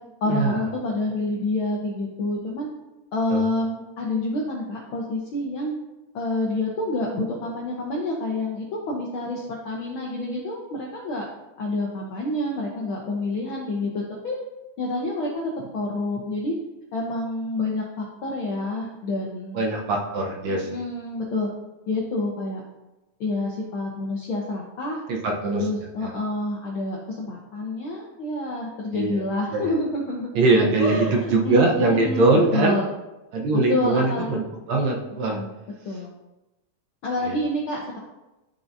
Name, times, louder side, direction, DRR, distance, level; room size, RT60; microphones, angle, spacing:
voice 1, 0.2-2.7 3.1-5.7 6.1-11.2 11.6-14.4 14.8-16.5 16.9-19.6 20.5-21.5 21.9-22.6 23.2-25.0 25.6-30.3 30.8-32.9 33.5-34.3 35.3-35.5 35.8-36.1 37.0-38.0, left 2 dB, 75° left, -2 dB, 1.2 m, -28 dB
voice 2, 19.5-20.7 25.1-25.7 26.0-26.1 28.9-29.2 29.5-29.7 30.4-32.8 33.3-35.4 37.2-37.4, right 3 dB, 70° right, 0 dB, 2.0 m, -22 dB
11.5 x 4.6 x 2.7 m, 1.0 s
omnidirectional pair, 3.4 m